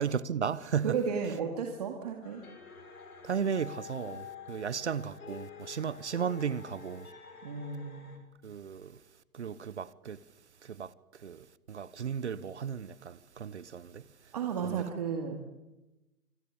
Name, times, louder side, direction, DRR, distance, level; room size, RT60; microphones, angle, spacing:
voice 1, 0.0-0.9 3.2-7.1 8.4-9.0 9.3-10.2 10.6-10.9 11.2-14.0 14.6-14.7, right 7 dB, 50° right, 1.0 m, -35 dB
voice 2, 0.8-2.4 7.4-8.1 14.3-15.4, right 6 dB, 30° right, 2.2 m, -33 dB
sound 1, 2.2-8.2, left 6 dB, 85° left, 7.2 m, -48 dB
26.0 x 23.0 x 8.7 m
hypercardioid pair, 175°, 43 cm